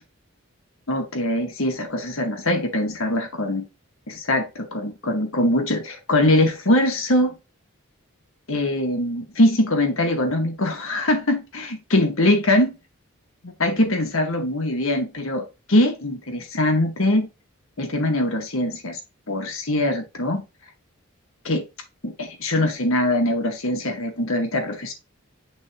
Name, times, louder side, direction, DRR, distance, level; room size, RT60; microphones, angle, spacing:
voice 1, 0.9-3.7 4.1-7.4 8.5-11.6 11.9-12.8 13.4-17.3 17.8-19.0 19.3-20.4 21.4-21.6 22.0-24.9, left 1 dB, 70° left, 1.8 m, -22 dB
10.0 x 3.5 x 3.0 m
head